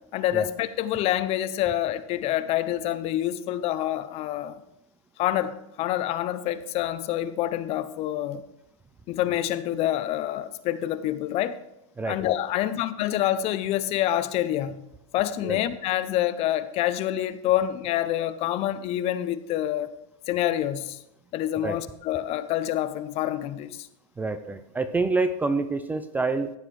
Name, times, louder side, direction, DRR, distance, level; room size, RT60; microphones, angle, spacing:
voice 1, 0.1-4.6 5.2-8.4 9.1-11.6 12.1-14.9 15.1-19.9 20.3-21.0 21.3-23.9, left 12 dB, 35° left, 13 dB, 0.6 m, -27 dB
voice 2, 24.2-26.5, right 3 dB, 10° right, 10 dB, 0.4 m, -27 dB
14.5 x 8.1 x 3.2 m, 0.85 s
hypercardioid pair, 125°, 18 cm